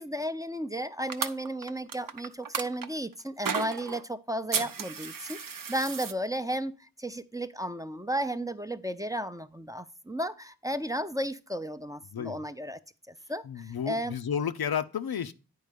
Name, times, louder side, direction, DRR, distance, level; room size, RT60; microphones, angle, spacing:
voice 1, 0.0-12.8 13.1-14.2, right 1 dB, 10° right, 0.5 m, -34 dB
sound 1, 1.1-2.9 3.5-4.0 4.5-6.1, right 6 dB, 65° right, 0.7 m, -33 dB
voice 2, 12.1-12.4 13.4-15.3, left 8 dB, 80° left, 0.6 m, -32 dB
9.5 x 4.5 x 5.1 m
wide cardioid pair, 45°, 36 cm